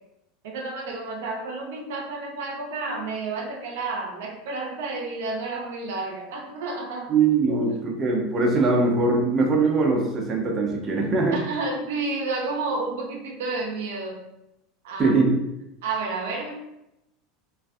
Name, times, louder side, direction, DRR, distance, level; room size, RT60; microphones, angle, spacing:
voice 1, 0.4-7.1 11.3-14.2 14.8-15.2 15.8-16.5, right 3 dB, 80° right, 0 dB, 0.6 m, -30 dB
voice 2, 7.1-11.4 15.0-15.4, right 3 dB, 30° right, -1 dB, 0.7 m, -21 dB
3.2 x 2.6 x 2.4 m, 0.86 s
supercardioid pair, 105°, 0 cm